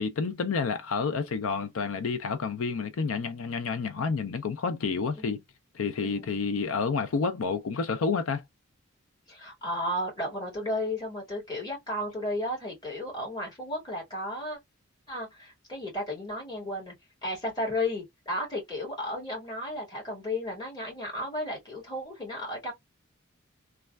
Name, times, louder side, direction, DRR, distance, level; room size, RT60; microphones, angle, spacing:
voice 1, 0.0-5.4 5.7-8.4, left 5 dB, 85° left, 0.5 m, -29 dB
voice 2, 6.0-6.3 9.3-14.6 15.1-16.9 17.2-22.7, left 1 dB, 20° left, 2.0 m, -33 dB
3.2 x 2.3 x 2.2 m
head